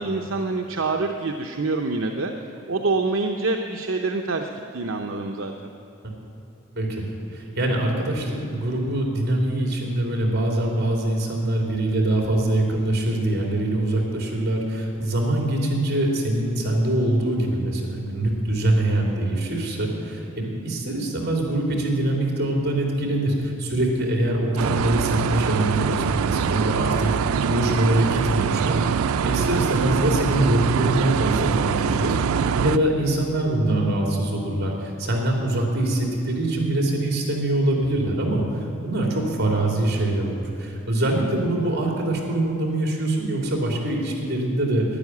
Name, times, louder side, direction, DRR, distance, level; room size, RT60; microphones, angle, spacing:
voice 1, 0.0-2.3 2.7-5.7 31.9-32.3, right 3 dB, 70° right, 3 dB, 0.7 m, -26 dB
voice 2, 6.7-27.1 27.5-32.2 32.6-44.8, right 1 dB, 50° right, 0 dB, 3.1 m, -24 dB
sound 1, 24.6-32.8, right 6 dB, 85° right, 0.4 m, -23 dB
12.5 x 10.5 x 9.5 m, 2.9 s
head